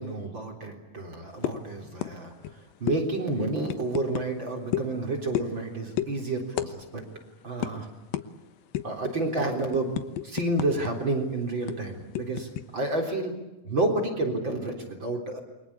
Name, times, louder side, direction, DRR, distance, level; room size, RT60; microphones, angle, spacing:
voice 1, 0.0-7.0 7.4-7.9 8.8-10.0 10.2-13.4 13.6-15.4, right 2 dB, 35° right, 2 dB, 4.2 m, -30 dB
sound 1, 1.4-1.7 2.0-2.2 2.4-2.6 2.9-3.0 3.7-4.3 4.7-4.9 5.3-5.6 6.0-6.1 6.6-6.7 7.0-7.2 7.6-7.7 8.1-8.3 8.7-9.0 9.4-10.9 11.2-11.3 11.7-12.6, left 12 dB, 80° left, 2.9 m, -31 dB
29.0 x 24.0 x 8.5 m, 1.0 s
omnidirectional pair, 4.1 m